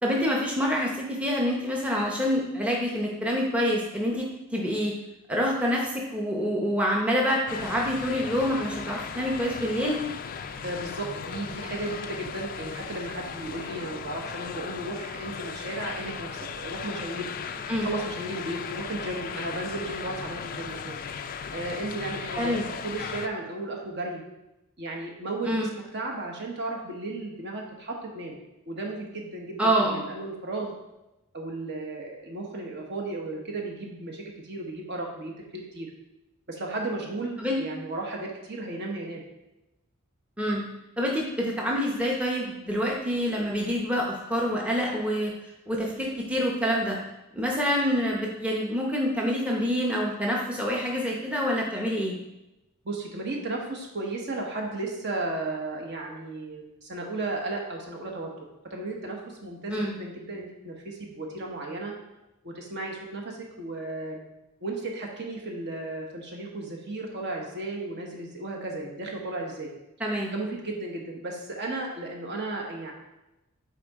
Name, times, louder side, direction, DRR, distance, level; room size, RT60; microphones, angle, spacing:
voice 1, 0.0-4.9 5.3-10.0 17.7-17.9 22.4-22.7 25.5-25.7 29.6-30.0 37.4-37.6 40.4-40.6 41.0-45.3 45.7-47.0 47.3-52.2 59.7-59.9 70.0-70.3, equal, 5° right, -2 dB, 0.7 m, -26 dB
sound 1, 7.5-23.3, left 6 dB, 40° left, 0.3 m, -37 dB
voice 2, 10.6-21.0 21.5-24.2 24.8-28.4 28.7-30.7 31.3-35.9 36.5-39.2 52.8-58.3 58.7-61.9 62.4-64.2 64.6-69.7 70.3-72.9, right 2 dB, 50° right, 0 dB, 1.1 m, -34 dB
8.2 x 4.1 x 3.6 m, 0.95 s
head